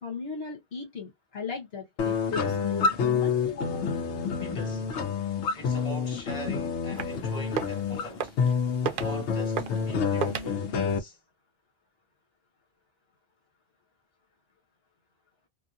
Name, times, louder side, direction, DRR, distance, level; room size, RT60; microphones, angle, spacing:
voice 1, 0.0-3.9, left 5 dB, 65° left, 1.2 m, -37 dB
sound 1, 2.0-11.0, left 6 dB, 85° left, 0.9 m, -28 dB
voice 2, 4.4-4.9 5.5-8.4 8.9-11.2, equal, 35° left, 1.4 m, -41 dB
sound 2, 6.9-7.2 7.5-7.8 8.2-8.5 8.8-9.1 9.6-9.9 10.2-10.5, right 7 dB, 60° right, 0.6 m, -32 dB
2.6 x 2.5 x 2.4 m
omnidirectional pair, 1.1 m